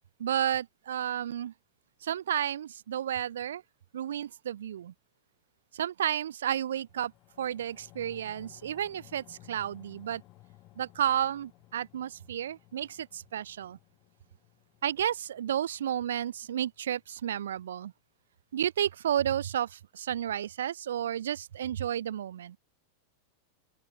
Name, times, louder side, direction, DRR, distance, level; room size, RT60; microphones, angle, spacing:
voice 1, 0.2-1.5 2.0-3.6 3.9-4.9 5.7-7.1 7.4-10.2 10.8-13.8 14.8-17.9 18.5-22.6, right 10 dB, 65° right, 0.5 m, -32 dB
sound 1, 6.7-17.3 17.6-17.7, left 19 dB, 40° left, 1.6 m, -58 dB
open air
figure-of-eight pair, 90°, 0 cm